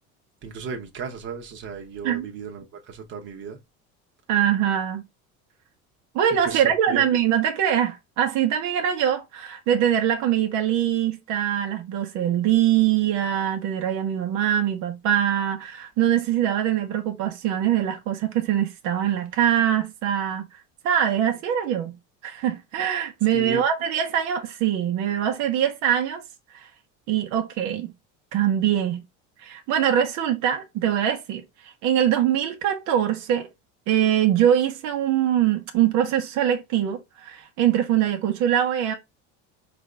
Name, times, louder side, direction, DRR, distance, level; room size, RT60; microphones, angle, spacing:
voice 1, 0.4-3.6 6.4-7.1 23.3-23.6, right 5 dB, 40° right, 1.0 m, -35 dB
voice 2, 4.3-5.0 6.1-20.5 20.8-22.0 22.2-26.2 26.5-26.7 27.1-27.9 28.3-29.0 29.4-31.4 31.8-33.5 33.9-38.9, right 10 dB, 65° right, 1.0 m, -23 dB
4.9 x 2.6 x 3.2 m
cardioid pair, 150°, 31 cm